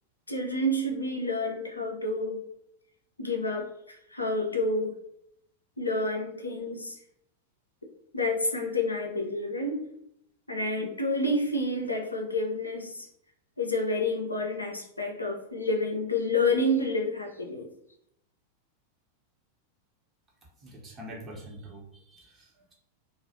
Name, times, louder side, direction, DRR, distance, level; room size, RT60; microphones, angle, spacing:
voice 1, 0.3-2.4 3.2-4.9 5.8-7.0 8.1-9.8 10.5-13.1 13.6-17.7, left 2 dB, 80° left, 1 dB, 0.4 m, -29 dB
voice 2, 20.6-22.7, right 1 dB, 25° right, -2 dB, 0.8 m, -45 dB
2.3 x 2.0 x 2.6 m, 0.75 s
figure-of-eight pair, 90°, 0 cm